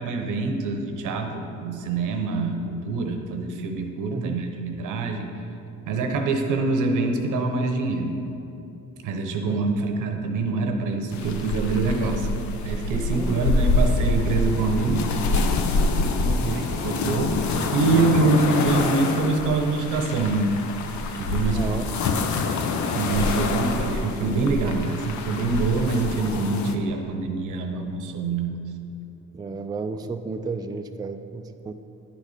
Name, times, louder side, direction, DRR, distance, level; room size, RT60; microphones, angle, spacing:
voice 1, 0.0-5.3 5.9-8.1 9.0-12.3 12.6-15.1 16.5-20.5 21.1-21.8 22.9-28.6, right 3 dB, 85° right, 4 dB, 0.9 m, -25 dB
voice 2, 4.1-4.4 9.4-9.6 10.0-10.1 13.1-13.7 16.2-16.7 21.5-21.9 29.3-31.7, right 4 dB, 15° right, 7 dB, 0.3 m, -32 dB
sound 1, 11.1-26.7, left 3 dB, 70° left, 0.7 m, -26 dB
10.0 x 4.1 x 5.0 m, 2.7 s
cardioid pair, 90°, 30 cm